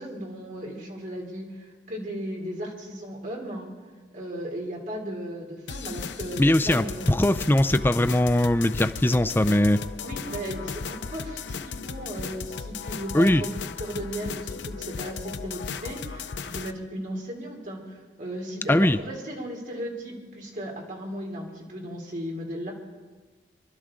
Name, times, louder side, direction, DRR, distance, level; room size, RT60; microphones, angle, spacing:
voice 1, 0.0-3.7 4.1-7.1 10.0-22.7, right 1 dB, 50° right, -1 dB, 3.1 m, -36 dB
sound 1, 5.7-16.7, left 5 dB, 85° left, 0.6 m, -36 dB
voice 2, 6.4-9.8 13.1-13.4 18.7-19.0, left 1 dB, 10° left, 10 dB, 0.4 m, -21 dB
24.5 x 12.0 x 3.8 m, 1.4 s
head